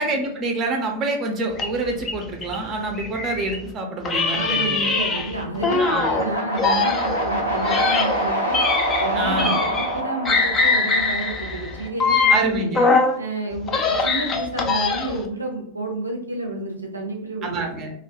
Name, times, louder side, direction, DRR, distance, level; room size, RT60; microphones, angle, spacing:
voice 1, 0.0-4.9 5.8-6.2 9.1-9.6 12.3-12.9 17.4-17.9, right 2 dB, 30° right, 3 dB, 0.5 m, -26 dB
sound 1, 1.5-3.6 4.0-6.2 6.6-10.0 10.2-13.2 13.6-15.3, left 4 dB, 25° left, 0.4 m, -22 dB
voice 2, 4.3-8.6 9.0-12.7 13.2-17.7, right 2 dB, 85° right, 1 dB, 0.5 m, -30 dB
sound 2, 5.6-11.7, right 1 dB, 85° left, 0.7 m, -26 dB
2.2 x 2.1 x 2.8 m, 0.69 s
figure-of-eight pair, 90°, 0 cm